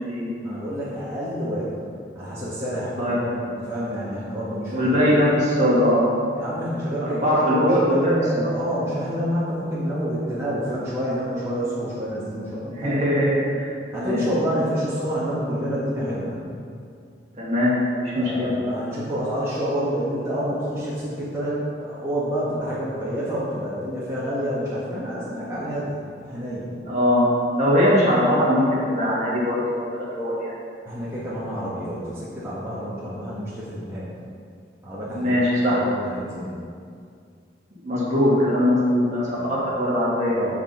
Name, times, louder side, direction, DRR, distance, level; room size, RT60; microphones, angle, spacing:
voice 1, 0.4-1.7 2.2-5.1 6.3-13.0 13.9-16.4 18.1-26.7 30.9-34.1 34.8-36.5 39.3-39.5 40.3-40.6, equal, 15° right, -10 dB, 1.7 m, -28 dB
voice 2, 4.7-6.1 7.1-8.6 12.6-13.7 14.0-14.2 17.4-18.5 26.8-30.5 35.1-35.8 37.8-40.5, equal, 40° right, -7 dB, 2.1 m, -21 dB
7.1 x 7.1 x 5.6 m, 2.3 s
head